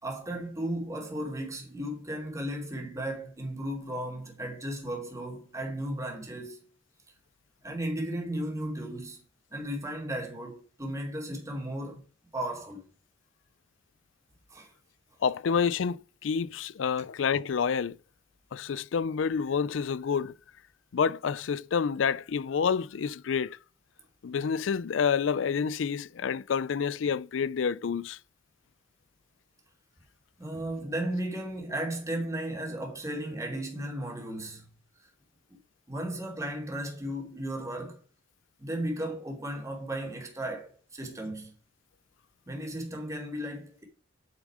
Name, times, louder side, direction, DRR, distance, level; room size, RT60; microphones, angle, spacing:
voice 1, 0.0-6.6 7.6-9.2 9.5-12.0 12.3-12.8 14.5-14.7 30.4-34.7 35.9-38.0 38.6-41.5 42.5-43.8, right 1 dB, 15° right, 2.8 m, -35 dB
voice 2, 15.2-17.9 18.5-20.3 20.9-23.6 24.2-28.2, left 6 dB, 85° left, 0.4 m, -28 dB
8.9 x 7.3 x 4.9 m
head